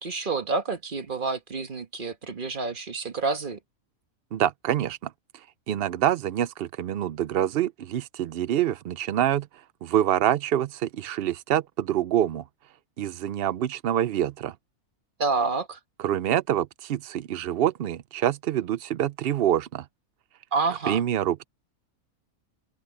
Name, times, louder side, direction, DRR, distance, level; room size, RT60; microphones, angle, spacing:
voice 1, 0.0-3.6 15.2-15.8 20.5-21.0, right 4 dB, 35° right, 1.5 m, -28 dB
voice 2, 4.3-5.1 5.7-9.5 9.8-12.4 13.0-14.5 16.0-19.9 20.9-21.5, right 11 dB, 70° right, 0.5 m, -26 dB
open air
omnidirectional pair, 1.6 m